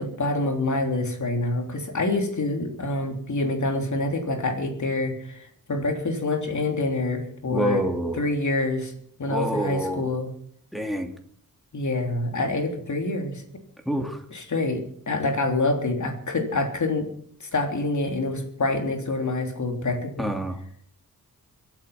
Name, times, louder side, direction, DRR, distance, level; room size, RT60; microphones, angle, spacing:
voice 1, 0.0-7.8 8.1-8.9 9.2-10.3 11.7-13.4 14.3-17.1 17.4-20.3, left 2 dB, 55° left, 3 dB, 3.5 m, -26 dB
voice 2, 7.5-8.2 9.3-10.1 10.7-11.1 13.9-14.2 20.2-20.6, equal, ahead, 3 dB, 2.7 m, -27 dB
24.5 x 8.9 x 5.9 m, 0.62 s
wide cardioid pair, 90°, 34 cm